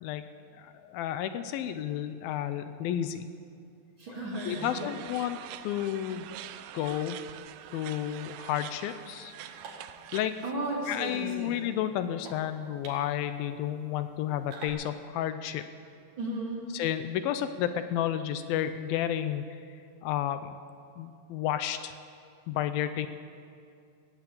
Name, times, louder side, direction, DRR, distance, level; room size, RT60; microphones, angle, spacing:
voice 1, 0.0-3.3 4.5-5.4 5.6-6.3 6.7-7.2 7.7-9.3 10.1-10.4 10.9-15.7 16.7-19.5 20.0-20.6 21.0-21.9 22.5-23.1, left 11 dB, 80° left, 10 dB, 2.4 m, -31 dB
voice 2, 4.0-4.9 10.4-11.5 16.2-16.6, right 1 dB, 40° right, -4 dB, 2.5 m, -34 dB
sound 1, 4.3-10.5, right 12 dB, 85° right, 1.9 m, -45 dB
sound 2, 7.3-14.7, right 4 dB, 65° right, 3.5 m, -53 dB
18.0 x 8.6 x 8.5 m, 2.4 s
omnidirectional pair, 4.3 m